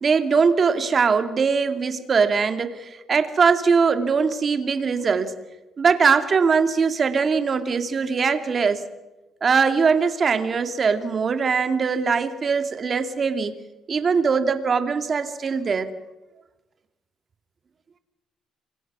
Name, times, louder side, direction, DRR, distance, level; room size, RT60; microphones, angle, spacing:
voice 1, 0.0-5.3 5.8-8.8 9.4-13.5 13.9-15.9, right 5 dB, 40° right, 9 dB, 2.3 m, -21 dB
28.5 x 24.5 x 6.1 m, 1.1 s
cardioid pair, 120°, 0 cm